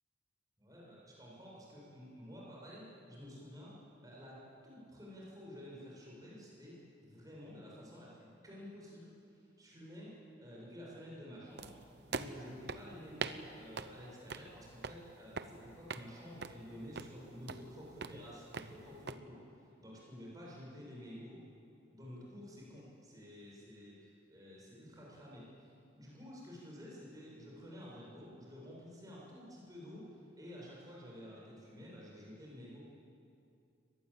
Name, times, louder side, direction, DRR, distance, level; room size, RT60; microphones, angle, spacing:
voice 1, 0.6-3.7 4.0-6.7 7.0-9.1 9.6-10.1 10.4-11.8 12.1-21.4 21.9-25.7 26.0-32.8, equal, 20° right, -5 dB, 7.5 m, -51 dB
sound 1, 11.6-19.2, right 4 dB, 55° right, 0.9 m, -45 dB
24.0 x 19.5 x 8.9 m, 2.6 s
head